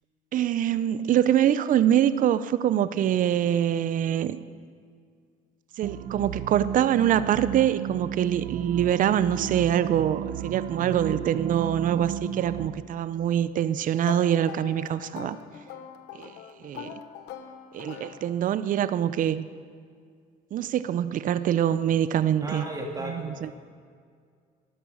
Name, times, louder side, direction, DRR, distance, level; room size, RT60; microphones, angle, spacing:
voice 1, 0.3-4.4 5.8-15.4 16.1-16.3 16.6-16.9 17.7-19.5 20.5-22.6 23.0-23.5, right 10 dB, 50° right, 15 dB, 0.6 m, -24 dB
sound 1, 5.8-12.7, right 9 dB, 85° right, 0.8 m, -34 dB
sound 2, 14.0-18.7, left 8 dB, 85° left, 1.1 m, -42 dB
voice 2, 22.4-23.5, right 1 dB, 20° right, 0 dB, 2.5 m, -35 dB
13.5 x 11.0 x 6.9 m, 2.1 s
cardioid pair, 110°, 17 cm